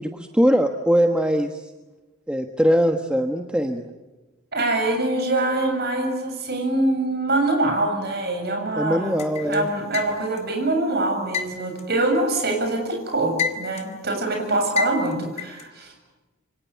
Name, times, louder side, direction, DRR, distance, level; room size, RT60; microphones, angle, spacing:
voice 1, 0.0-1.7 2.3-3.9 8.8-9.7, equal, 5° right, 4 dB, 1.3 m, -21 dB
voice 2, 4.5-9.1 9.4-15.9, right 2 dB, 50° right, 4 dB, 7.4 m, -24 dB
sound 1, 9.2-10.5 11.3-12.7 13.1-14.0 14.8-15.6, left 7 dB, 30° left, 2.4 m, -29 dB
27.5 x 25.5 x 8.5 m, 1.1 s
head